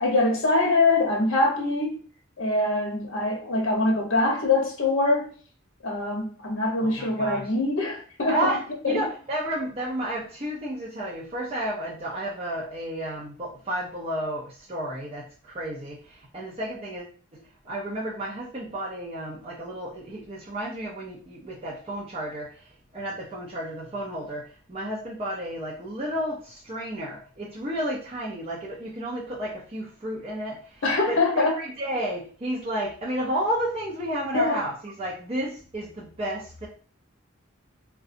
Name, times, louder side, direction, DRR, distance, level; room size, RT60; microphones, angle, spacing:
voice 1, 0.0-2.0 2.4-5.3 5.8-8.5 8.8-9.0 30.8-31.6 34.3-34.6, left 2 dB, 70° left, 0.8 m, -23 dB
voice 2, 6.8-7.5 8.3-8.6 8.9-22.5 22.9-30.6 31.1-36.7, right 1 dB, 30° right, 0.5 m, -32 dB
3.7 x 2.2 x 2.5 m
head